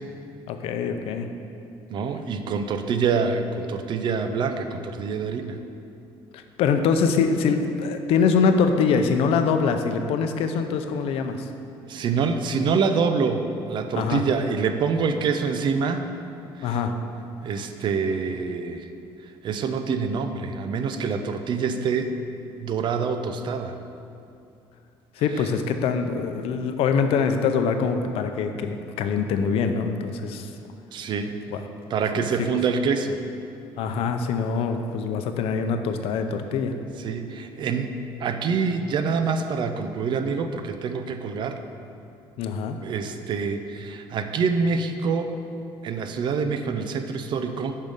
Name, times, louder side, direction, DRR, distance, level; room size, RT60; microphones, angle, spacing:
voice 1, 0.5-1.3 6.3-11.5 13.9-14.2 16.6-16.9 25.2-30.5 31.5-31.6 32.1-32.6 33.8-36.7 42.4-42.8, left 5 dB, 70° left, 7 dB, 0.6 m, -24 dB
voice 2, 1.9-5.6 11.9-16.1 16.6-16.8 17.4-18.9 19.4-22.1 22.6-23.7 30.9-31.4 31.9-33.2 37.0-41.6 42.8-45.3 45.8-47.8, right 5 dB, 50° right, 7 dB, 0.5 m, -26 dB
5.5 x 5.2 x 6.3 m, 2.6 s
cardioid pair, 125°, 10 cm